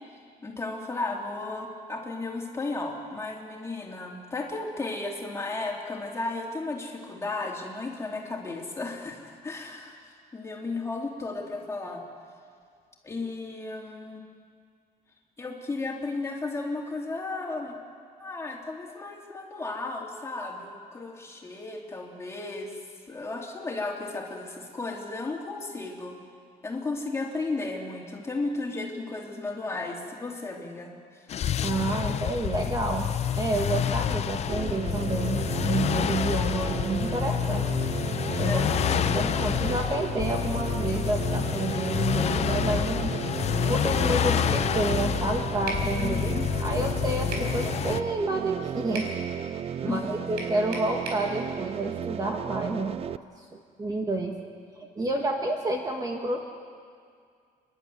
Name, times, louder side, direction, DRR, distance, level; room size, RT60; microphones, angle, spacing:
voice 1, 0.4-10.0 10.3-12.0 13.0-14.2 15.4-17.8 18.2-22.8 23.1-26.2 26.6-30.9 38.4-38.9 46.0-46.5 49.8-50.3, left 3 dB, 15° left, -1 dB, 3.2 m, -34 dB
sound 1, 31.3-48.0, left 9 dB, 45° left, 0.6 m, -28 dB
voice 2, 31.6-33.1 33.4-37.7 38.4-38.7 39.1-43.1 43.7-46.3 46.6-49.1 49.8-53.0 53.5-54.4 54.7-56.4, right 2 dB, 25° right, 2 dB, 1.6 m, -29 dB
sound 2, 34.5-53.2, right 8 dB, 40° right, 0.5 m, -34 dB
sound 3, 45.7-45.9 47.3-47.5 49.0-49.2 50.4-51.3, right 3 dB, 90° right, 4.4 m, -35 dB
30.0 x 11.5 x 9.5 m, 2.1 s
cardioid pair, 140°, 16 cm